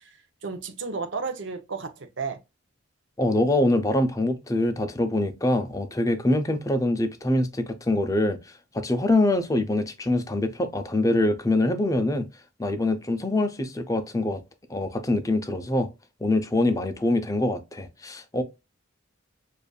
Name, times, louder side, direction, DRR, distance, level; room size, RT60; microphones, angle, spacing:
voice 1, 0.0-2.4, right 4 dB, 60° right, 0.7 m, -33 dB
voice 2, 3.2-8.4 8.7-12.3 12.6-14.4 14.7-15.9 16.2-18.4, left 1 dB, 15° left, 0.5 m, -24 dB
6.7 x 2.5 x 2.3 m
head